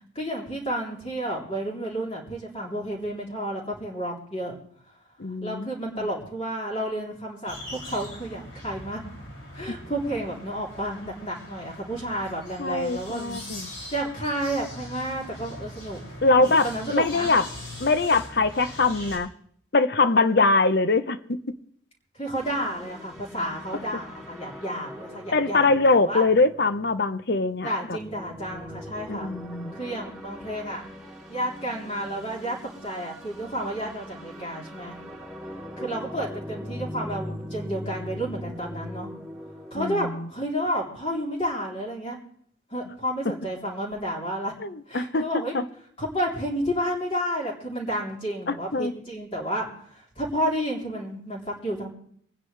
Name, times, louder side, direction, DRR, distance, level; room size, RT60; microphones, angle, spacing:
voice 1, 0.1-4.5 5.4-9.0 9.5-13.4 13.9-16.0 16.4-17.3 22.1-26.2 27.6-29.3 29.7-30.8 31.3-32.6 32.8-35.0 35.8-39.1 39.7-42.2 42.7-44.5 44.9-45.6 46.0-51.9, equal, 30° left, -3 dB, 3.3 m, -31 dB
voice 2, 5.2-6.1 12.6-13.7 16.2-17.5 17.8-19.3 19.7-21.4 25.3-27.7 29.1-29.8 39.7-40.3 44.6-45.7 48.5-48.9, left 3 dB, 55° left, 12 dB, 0.8 m, -23 dB
sound 1, 7.5-19.2, left 1 dB, 90° left, 6.2 m, -41 dB
sound 2, 22.3-40.0, equal, ahead, 2.6 m, -40 dB
25.0 x 9.8 x 3.3 m, 0.64 s
head